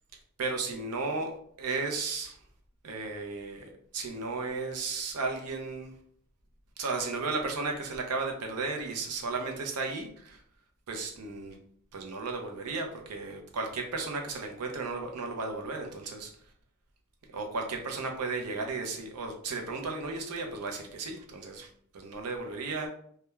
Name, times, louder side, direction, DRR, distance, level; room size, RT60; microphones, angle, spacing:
voice 1, 0.4-1.3 1.6-2.4 2.8-5.9 6.8-10.4 10.9-11.6 11.9-16.3 17.3-21.7 21.9-22.9, right 3 dB, 90° right, 3 dB, 0.6 m, -34 dB
3.0 x 2.2 x 2.2 m, 0.63 s
head